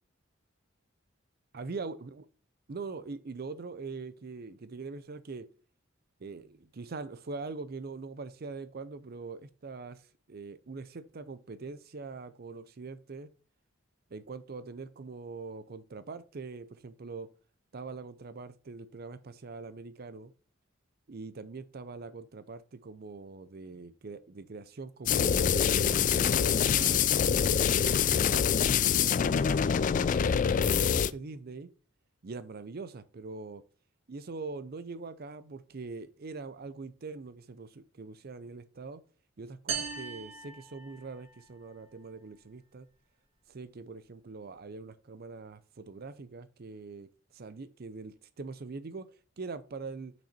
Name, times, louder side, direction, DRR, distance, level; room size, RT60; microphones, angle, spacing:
voice 1, 1.5-2.2 2.7-5.5 6.2-13.3 14.1-17.3 17.7-20.3 21.1-28.5 28.9-31.7 32.2-33.6 34.1-39.0 39.4-42.9 43.5-50.1, right 4 dB, 50° right, 13 dB, 0.5 m, -43 dB
sound 1, 25.1-31.1, left 8 dB, 40° left, 0.3 m, -25 dB
sound 2, 39.7-41.4, right 6 dB, 85° right, 2.0 m, -38 dB
6.2 x 5.8 x 4.2 m, 0.38 s
head